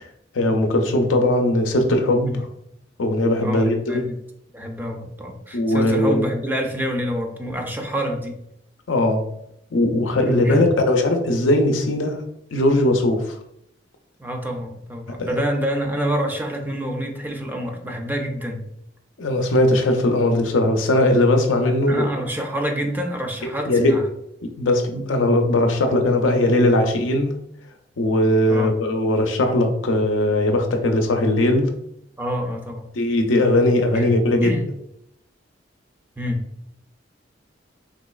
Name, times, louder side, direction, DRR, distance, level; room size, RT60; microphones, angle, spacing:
voice 1, 0.3-2.5 3.0-4.1 5.5-6.3 8.9-9.2 9.7-12.2 12.5-13.4 15.2-15.3 19.2-22.1 23.7-24.0 24.4-27.4 28.0-31.7 33.0-34.5, left 1 dB, 90° left, 4 dB, 0.6 m, -19 dB
voice 2, 3.4-4.2 4.5-8.4 10.2-10.7 14.2-18.6 21.7-24.0 28.5-28.7 32.2-32.9 33.9-34.1 34.4-34.6 36.2-36.5, equal, 10° right, 2 dB, 0.5 m, -27 dB
3.9 x 3.0 x 2.3 m, 0.77 s
head